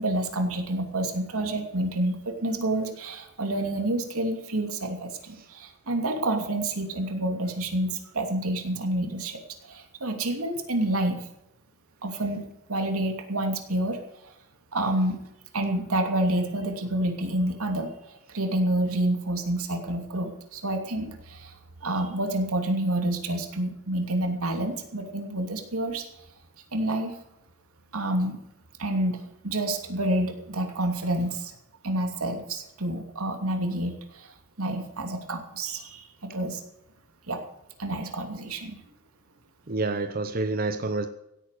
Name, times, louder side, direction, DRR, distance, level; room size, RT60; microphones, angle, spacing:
voice 1, 0.0-11.3 12.0-14.0 14.2-14.3 14.7-15.2 15.5-26.3 26.7-27.2 27.9-28.4 28.8-31.5 31.8-36.6 37.3-37.4 37.8-38.8, right 1 dB, 85° right, 5 dB, 2.8 m, -28 dB
voice 2, 39.7-41.1, right 3 dB, 45° right, 8 dB, 0.8 m, -28 dB
16.5 x 8.9 x 6.6 m, 0.84 s
head